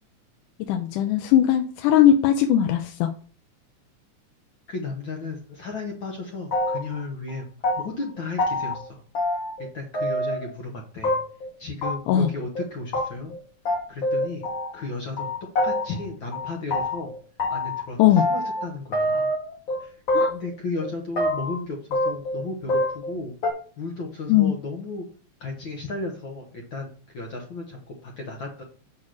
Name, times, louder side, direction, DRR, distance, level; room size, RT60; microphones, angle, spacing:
voice 1, 0.7-3.1 12.1-12.3 18.0-18.2 20.1-20.3 24.3-24.5, left 10 dB, 90° left, 6 dB, 2.2 m, -19 dB
voice 2, 4.7-7.5 7.8-9.0 9.7-11.2 11.6-13.3 13.9-14.4 14.7-15.3 15.6-17.1 17.5-19.3 19.8-20.0 20.3-23.3 23.8-25.1 25.4-26.9 27.1-28.6, left 3 dB, 60° left, 1 dB, 1.3 m, -34 dB
sound 1, 6.5-7.0 7.3-8.1 8.4-8.8 9.1-9.7 9.9-10.5 11.0-11.5 11.8-11.9 12.2-12.3 12.6-12.7 12.9-13.0 13.3-13.4 13.7-14.9 15.2-16.1 16.3-17.8 18.2-18.7 18.9-19.8 20.1-20.5 20.8-21.5 21.9-22.4 22.7-23.1 23.4-23.5, left 1 dB, 40° left, 2.5 m, -25 dB
6.4 x 4.9 x 6.2 m, 0.42 s
omnidirectional pair, 3.5 m